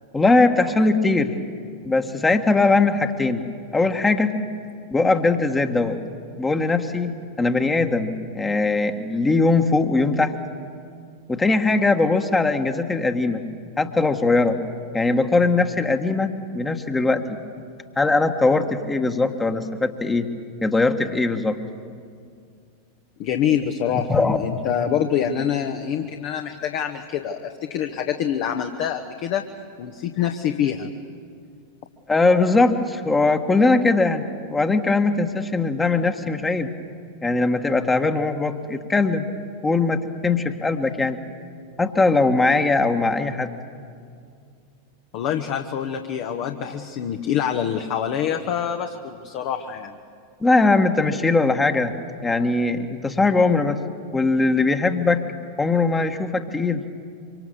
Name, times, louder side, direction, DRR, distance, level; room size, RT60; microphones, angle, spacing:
voice 1, 0.1-1.3 1.8-3.4 3.7-4.3 4.9-6.0 6.4-7.1 7.4-10.3 11.3-13.4 13.8-14.6 14.9-17.4 18.0-20.3 20.6-21.6 24.1-24.4 32.1-36.7 37.2-39.3 39.6-41.2 41.8-43.6 50.4-51.9 52.2-53.8 54.1-55.2 55.6-56.8, left 3 dB, 10° left, 6 dB, 1.5 m, -20 dB
voice 2, 23.2-29.4 29.8-30.9 45.1-49.9, left 9 dB, 45° left, 5 dB, 1.3 m, -25 dB
25.5 x 25.0 x 7.2 m, 2.2 s
figure-of-eight pair, 90°, 0 cm